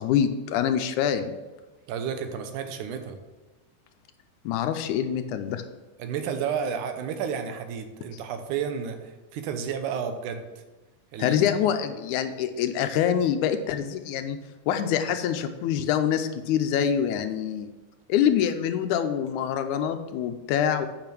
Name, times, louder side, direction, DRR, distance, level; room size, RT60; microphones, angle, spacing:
voice 1, 0.0-1.3 4.5-5.6 11.2-14.4 14.7-17.7 18.1-20.9, left 9 dB, 80° left, 8 dB, 2.1 m, -25 dB
voice 2, 1.9-3.2 6.0-10.6 11.1-11.4, right 7 dB, 80° right, 7 dB, 2.3 m, -31 dB
8.7 x 5.7 x 6.1 m, 1.2 s
omnidirectional pair, 3.6 m